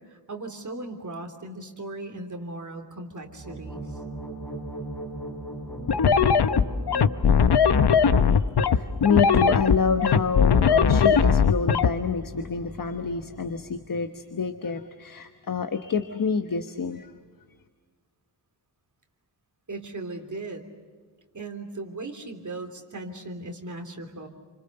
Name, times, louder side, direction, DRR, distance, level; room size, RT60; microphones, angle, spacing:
voice 1, 0.0-4.0 19.7-20.6 21.3-24.3, right 2 dB, 45° right, 4 dB, 3.4 m, -37 dB
sound 1, 3.2-13.9, equal, 5° left, 6.8 m, -38 dB
sound 2, 5.9-11.9, left 6 dB, 65° left, 0.9 m, -19 dB
voice 2, 8.2-17.1, left 5 dB, 50° left, 8 dB, 1.2 m, -28 dB
29.5 x 26.0 x 6.8 m, 1.5 s
wide cardioid pair, 140°, 42 cm